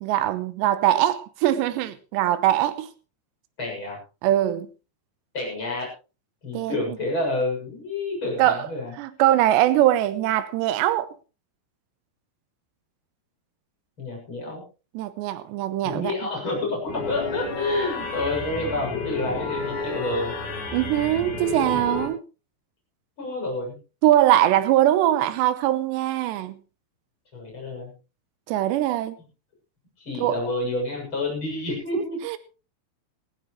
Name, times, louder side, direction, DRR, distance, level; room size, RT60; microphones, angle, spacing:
voice 1, 0.0-2.9 4.2-4.7 6.5-7.0 8.4-8.7 9.0-11.1 14.9-16.1 20.7-22.2 24.0-26.6 28.5-29.2 30.2-30.4 31.9-32.4, right 13 dB, 75° right, 2.7 m, -22 dB
voice 2, 3.6-4.0 5.3-5.9 6.4-8.9 14.0-14.6 15.8-20.3 23.2-23.8 27.3-27.9 30.0-32.2, left 2 dB, 25° left, 7.8 m, -29 dB
sound 1, 16.9-22.1, left 3 dB, 55° left, 6.4 m, -31 dB
19.5 x 15.5 x 3.2 m
omnidirectional pair, 6.0 m